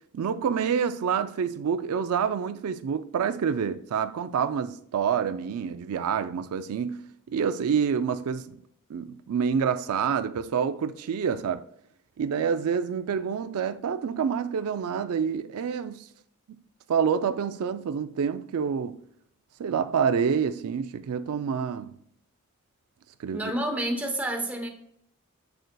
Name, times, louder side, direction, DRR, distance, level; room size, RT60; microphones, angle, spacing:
voice 1, 0.1-8.6 8.9-11.6 12.2-16.1 16.9-19.0 19.6-21.9 23.2-23.4, right 7 dB, 80° right, 0.4 m, -27 dB
voice 2, 23.3-24.7, right 1 dB, 5° right, 0.9 m, -29 dB
7.7 x 6.6 x 2.2 m
head